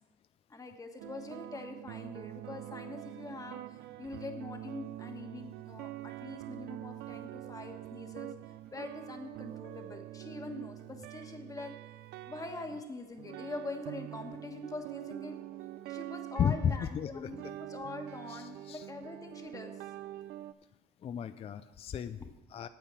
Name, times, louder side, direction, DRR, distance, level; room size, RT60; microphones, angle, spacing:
voice 1, 0.5-8.3 8.7-11.7 12.3-15.4 15.9-19.9 22.2-22.3, left 2 dB, 20° left, 5 dB, 1.4 m, -44 dB
sound 1, 1.0-20.5, right 14 dB, 80° right, 0.4 m, -45 dB
voice 2, 16.4-17.3 18.3-18.9 21.0-22.7, left 8 dB, 35° left, 11 dB, 0.4 m, -34 dB
9.0 x 8.1 x 6.2 m, 1.2 s
cardioid pair, 110°, 17 cm